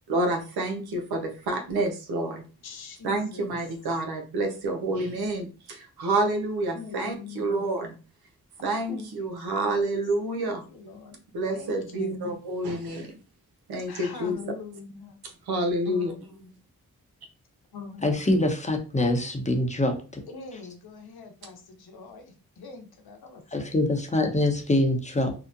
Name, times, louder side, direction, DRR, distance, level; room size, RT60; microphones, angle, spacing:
voice 1, 0.1-2.4 3.0-7.9 8.6-10.6 11.3-13.1 13.7-14.4 15.5-16.1, right 2 dB, 90° right, 4 dB, 0.6 m, -28 dB
voice 2, 2.6-3.6 6.7-7.6 8.9-10.0 10.4-11.2 11.5-12.4 13.9-15.2 15.8-16.5 17.7-18.2 20.3-23.6, left 4 dB, 80° left, 5 dB, 0.7 m, -43 dB
voice 3, 18.0-20.2 23.5-25.3, left 1 dB, 20° left, 3 dB, 0.8 m, -24 dB
2.8 x 2.1 x 2.4 m, 0.35 s
cardioid pair, 40°, 37 cm